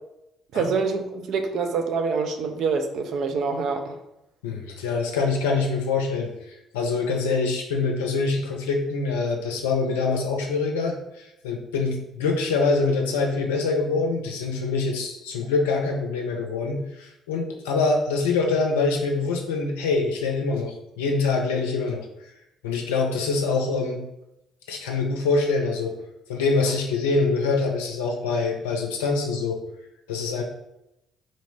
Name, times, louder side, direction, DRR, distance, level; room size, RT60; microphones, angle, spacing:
voice 1, 0.5-4.0, right 5 dB, 65° right, 5 dB, 0.4 m, -26 dB
voice 2, 4.4-22.1 22.6-24.0 24.7-25.9 26.3-29.6 30.1-30.4, left 4 dB, 80° left, 1 dB, 0.5 m, -25 dB
4.1 x 2.0 x 3.1 m, 0.88 s
hypercardioid pair, 45°, 0 cm